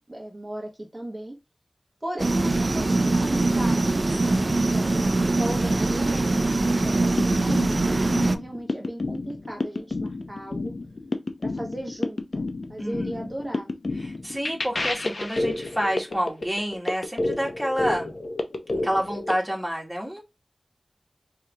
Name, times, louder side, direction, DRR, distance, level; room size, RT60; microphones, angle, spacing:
voice 1, 0.1-1.3 2.0-10.7 11.4-12.4 12.7-13.7, right 1 dB, 30° right, 0.9 m, -36 dB
sound 1, 2.2-8.4, right 2 dB, 55° right, 0.4 m, -22 dB
sound 2, 6.9-19.3, left 2 dB, 75° left, 0.6 m, -30 dB
voice 2, 12.8-13.3 14.0-18.1 18.8-20.2, equal, ahead, 1.5 m, -29 dB
4.6 x 2.8 x 2.3 m
wide cardioid pair, 55°, 0 cm